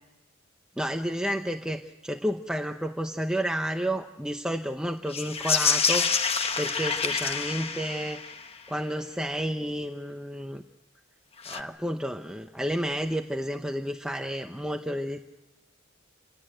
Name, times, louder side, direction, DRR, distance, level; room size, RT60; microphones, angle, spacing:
voice 1, 0.8-6.1 6.6-8.2 8.7-10.6 11.5-15.2, equal, 5° right, 5 dB, 0.8 m, -31 dB
sound 1, 5.1-8.6 11.4-11.6, left 5 dB, 30° left, 1.1 m, -27 dB
28.0 x 17.0 x 9.0 m, 1.0 s
head